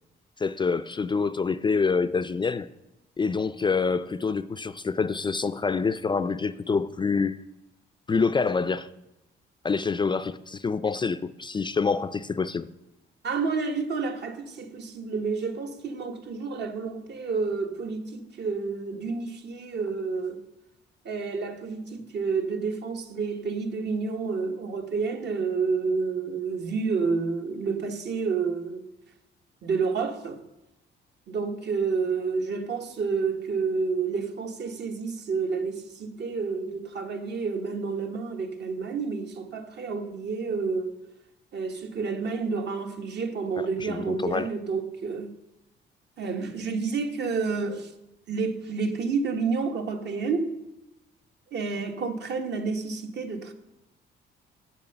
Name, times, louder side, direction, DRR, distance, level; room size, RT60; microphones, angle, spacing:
voice 1, 0.4-2.7 3.2-7.4 8.1-8.9 9.6-12.7 43.6-44.5, left 4 dB, 25° left, 0.4 m, -26 dB
voice 2, 13.2-20.4 21.0-28.8 29.6-30.4 31.3-40.9 41.5-45.4 46.2-47.9 48.3-50.6 51.5-53.5, right 4 dB, 60° right, 1.2 m, -29 dB
7.9 x 7.1 x 6.7 m
cardioid pair, 90°, 20 cm